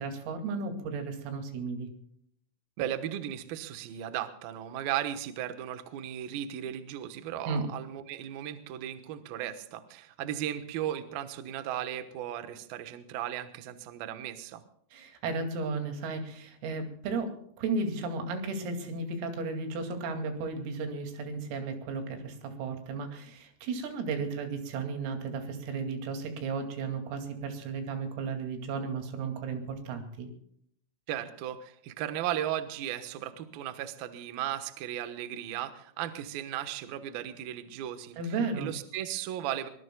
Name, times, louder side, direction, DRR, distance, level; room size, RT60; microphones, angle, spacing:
voice 1, 0.0-1.9 7.5-7.6 14.9-17.3 17.6-30.3 38.2-38.7, right 4 dB, 90° right, 5 dB, 5.1 m, -34 dB
voice 2, 2.8-14.6 31.1-39.7, right 11 dB, 70° right, 9 dB, 2.3 m, -36 dB
23.5 x 21.5 x 2.3 m, 0.68 s
omnidirectional pair, 5.9 m